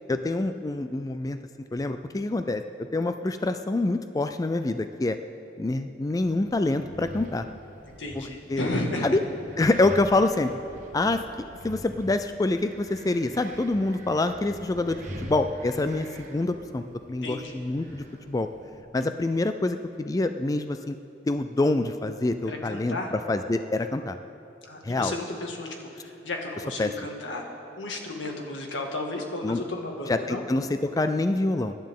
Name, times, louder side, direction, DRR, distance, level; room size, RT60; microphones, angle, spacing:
voice 1, 0.1-1.4 1.7-5.2 5.6-7.5 8.1-8.2 8.5-8.6 9.0-9.2 9.6-10.5 10.9-11.2 11.6-18.5 18.9-21.0 21.3-23.0 23.3-24.2 24.8-25.1 26.8-26.9 29.4-29.6 30.1-31.8, left 2 dB, 20° left, 9 dB, 0.3 m, -26 dB
Wind, 6.2-18.8, right 1 dB, 45° right, 1.4 m, -44 dB
voice 2, 8.0-9.2 17.2-17.6 22.5-23.1 24.6-27.4 27.8-30.4, left 2 dB, 90° left, 1 dB, 1.9 m, -33 dB
24.0 x 11.5 x 3.7 m, 2.7 s
head